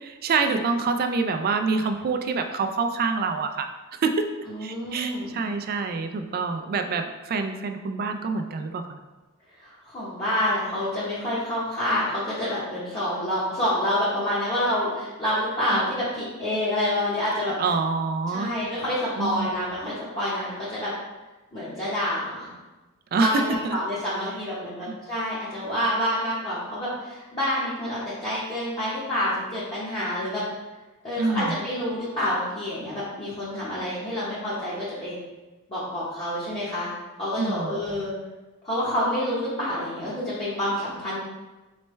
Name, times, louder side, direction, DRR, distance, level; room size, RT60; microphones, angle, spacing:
voice 1, 0.0-3.7 4.0-4.3 4.6-9.0 17.6-18.5 19.2-19.5 23.1-23.8 24.9-25.0 31.2-31.6 37.4-37.8, right 4 dB, 45° right, 6 dB, 0.3 m, -26 dB
voice 2, 4.5-5.4 9.6-17.6 18.3-20.9 21.5-22.5 23.1-30.4 31.0-35.2 35.7-36.9 37.2-38.1 38.6-41.2, left 1 dB, 25° left, -11 dB, 0.9 m, -28 dB
4.2 x 3.2 x 3.2 m, 1.1 s
head